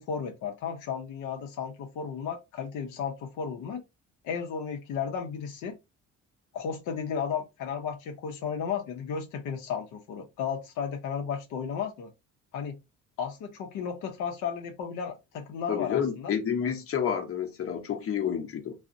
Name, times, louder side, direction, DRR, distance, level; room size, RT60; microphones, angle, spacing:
voice 1, 0.0-3.8 4.2-5.8 6.5-12.1 12.5-12.8 13.2-16.3, left 7 dB, 85° left, 0.5 m, -34 dB
voice 2, 15.7-18.7, left 8 dB, 50° left, 0.7 m, -29 dB
2.5 x 2.0 x 2.4 m
cardioid pair, 90°, 30 cm